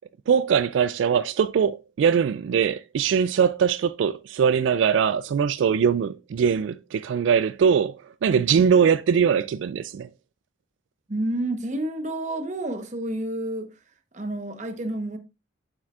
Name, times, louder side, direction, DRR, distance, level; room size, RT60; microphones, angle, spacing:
voice 1, 0.3-10.1, right 7 dB, 80° right, 0.3 m, -22 dB
voice 2, 8.3-8.6 11.1-13.7 14.1-15.2, right 1 dB, 40° right, 1.0 m, -29 dB
8.8 x 7.4 x 2.4 m
head